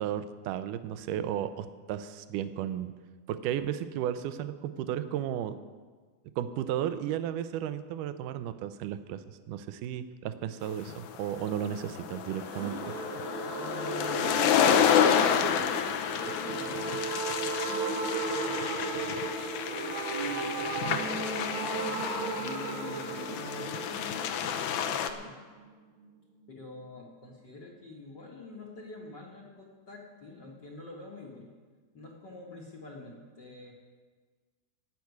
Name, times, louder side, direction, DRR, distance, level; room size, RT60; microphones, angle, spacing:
voice 1, 0.0-2.9 3.3-5.6 6.4-12.8 20.8-21.0, right 10 dB, 75° right, 11 dB, 2.1 m, -34 dB
sound 1, 10.9-25.1, left 8 dB, 75° left, 1.9 m, -30 dB
sound 2, 12.5-26.1 26.3-26.4 26.7-26.8, right 4 dB, 60° right, 2.2 m, -36 dB
voice 2, 13.6-14.5 14.8-15.8 16.1-17.0 17.4-19.4 20.2-21.7 22.3-25.4 26.5-31.5 31.9-33.7, left 2 dB, 45° left, -1 dB, 1.4 m, -46 dB
17.0 x 6.0 x 9.5 m, 1.5 s
omnidirectional pair, 4.2 m